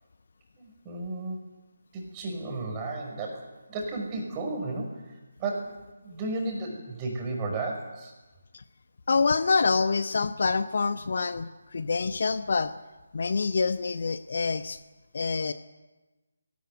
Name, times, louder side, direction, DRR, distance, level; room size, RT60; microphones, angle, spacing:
voice 1, 0.6-1.5 1.9-5.0 5.4-5.8 6.0-8.1, right 2 dB, 15° right, 1 dB, 5.8 m, -33 dB
voice 2, 9.1-12.7 13.1-14.8 15.1-15.5, left 4 dB, 50° left, 11 dB, 1.0 m, -26 dB
20.5 x 19.0 x 9.5 m, 1.1 s
figure-of-eight pair, 150°, 0 cm